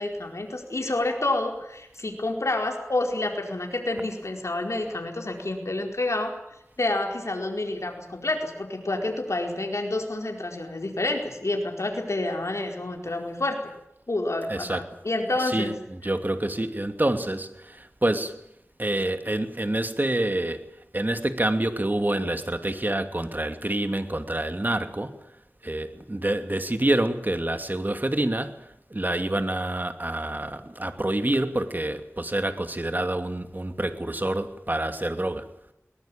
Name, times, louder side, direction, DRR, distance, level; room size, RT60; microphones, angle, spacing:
voice 1, 0.0-6.3 6.8-13.6 14.1-15.8, left 2 dB, 75° left, 3 dB, 4.7 m, -28 dB
voice 2, 14.5-14.8 15.4-18.4 18.8-20.7 20.9-25.3 25.6-35.5, right 1 dB, 40° right, 8 dB, 2.6 m, -27 dB
22.0 x 20.0 x 9.0 m, 0.80 s
wide cardioid pair, 40°, 5 cm